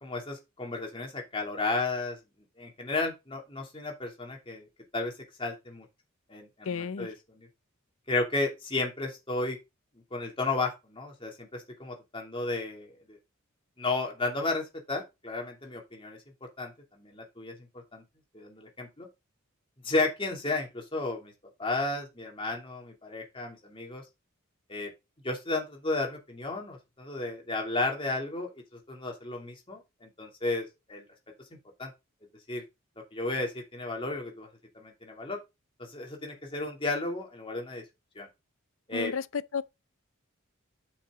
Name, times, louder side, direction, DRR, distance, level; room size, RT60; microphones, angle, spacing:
voice 1, 0.0-2.2 2.6-4.7 4.9-5.1 5.4-5.9 6.3-7.5 8.1-9.6 10.1-13.2 13.8-16.2 16.6-18.0 18.3-19.1 19.8-21.3 21.6-24.0 24.7-24.9 25.2-31.0 31.8-31.9 32.5-32.6 33.1-34.5 34.7-35.4 35.8-37.8 38.2-38.3 38.9-39.1, left 2 dB, 25° left, 2.8 m, -33 dB
voice 2, 6.6-7.1 38.9-39.6, left 5 dB, 65° left, 0.6 m, -32 dB
8.7 x 6.4 x 3.9 m
head